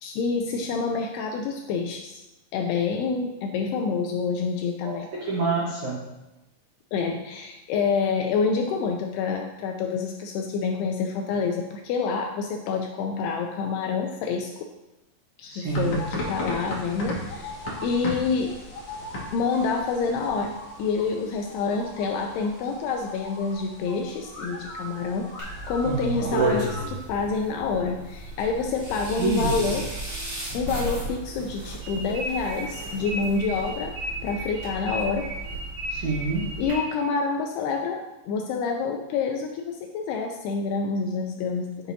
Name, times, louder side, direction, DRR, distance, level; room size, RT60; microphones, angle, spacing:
voice 1, 0.0-2.2 2.5-5.1 6.9-14.5 15.4-18.6 19.3-25.3 25.7-29.9 30.5-34.0 34.2-35.3 36.6-41.9, left 5 dB, 85° left, 3 dB, 2.3 m, -27 dB
voice 2, 4.8-6.0 15.5-16.0 25.9-26.3 29.2-29.7 35.9-36.5, right 4 dB, 65° right, -6 dB, 1.9 m, -27 dB
sound 1, 15.7-26.9, left 1 dB, 60° left, 1.8 m, -37 dB
sound 2, 25.4-36.7, right 2 dB, 30° right, 2.9 m, -34 dB
sound 3, 31.8-37.1, right 1 dB, 85° right, 3.7 m, -35 dB
9.3 x 6.0 x 2.7 m, 0.99 s
omnidirectional pair, 5.0 m